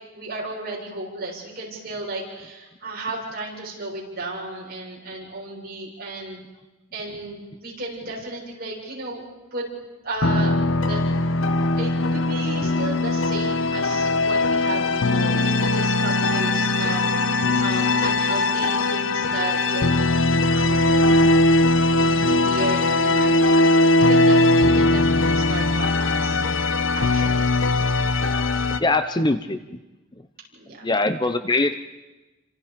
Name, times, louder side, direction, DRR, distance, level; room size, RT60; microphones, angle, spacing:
voice 1, 0.1-6.4 6.9-9.2 9.5-9.6 10.0-11.0 11.8-21.4 21.9-26.4 26.9-27.5 30.5-30.9, right 2 dB, 50° right, -2 dB, 7.5 m, -34 dB
sound 1, 10.2-28.8, left 2 dB, 80° left, 1.1 m, -20 dB
voice 2, 28.8-29.8 30.8-31.7, left 2 dB, 20° left, 10 dB, 0.8 m, -22 dB
30.0 x 26.0 x 5.3 m, 1.1 s
head